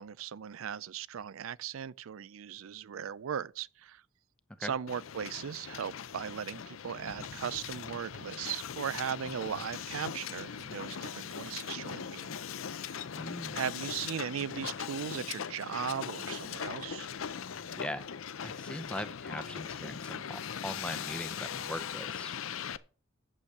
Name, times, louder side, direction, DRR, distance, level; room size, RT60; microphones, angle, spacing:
voice 1, 0.0-4.0 4.6-12.3 12.8-13.0 13.5-17.1, right 8 dB, 90° right, 0.4 m, -38 dB
Hiss, 4.9-22.8, left 7 dB, 85° left, 0.6 m, -40 dB
voice 2, 13.1-13.6 17.8-18.1 18.4-22.3, left 1 dB, 5° left, 0.6 m, -40 dB
8.7 x 8.1 x 6.6 m
head